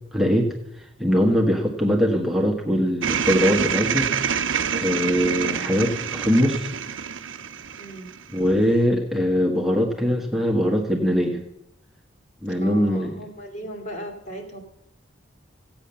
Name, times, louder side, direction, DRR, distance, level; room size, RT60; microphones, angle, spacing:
voice 1, 0.1-4.1 4.7-6.7 8.3-11.4 12.4-13.1, equal, ahead, -1 dB, 1.4 m, -22 dB
sound 1, 3.0-8.4, right 7 dB, 80° right, 0.7 m, -27 dB
voice 2, 7.8-8.2 12.6-14.6, right 1 dB, 40° left, 3 dB, 2.5 m, -37 dB
15.0 x 8.8 x 6.9 m, 0.83 s
head